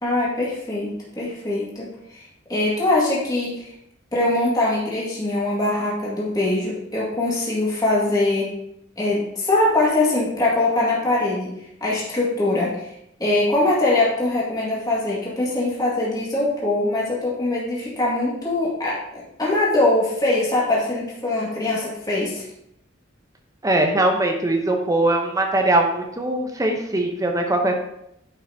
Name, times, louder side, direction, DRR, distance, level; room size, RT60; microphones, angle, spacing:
voice 1, 0.0-2.2 2.5-3.7 4.1-8.5 9.0-11.5 11.8-12.7 13.2-22.4, left 2 dB, 20° left, -6 dB, 2.0 m, -22 dB
voice 2, 23.6-27.8, right 1 dB, 15° right, 3 dB, 0.9 m, -21 dB
10.0 x 5.6 x 2.8 m, 0.79 s
head